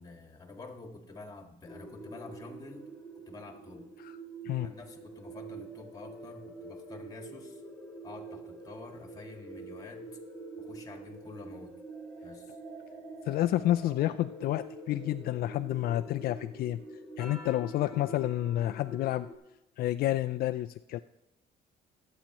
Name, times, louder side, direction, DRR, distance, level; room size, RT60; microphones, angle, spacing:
voice 1, 0.0-2.9 3.3-3.9 4.6-7.6 8.0-10.1 10.6-11.7 12.2-12.6, left 3 dB, 20° left, 3 dB, 1.9 m, -48 dB
sound 1, 1.7-19.3, right 2 dB, ahead, 3.2 m, -46 dB
voice 2, 13.2-16.8 17.2-19.3 19.8-21.0, left 14 dB, 65° left, 10 dB, 0.4 m, -30 dB
23.0 x 8.7 x 3.0 m, 0.94 s
cardioid pair, 110°, 17 cm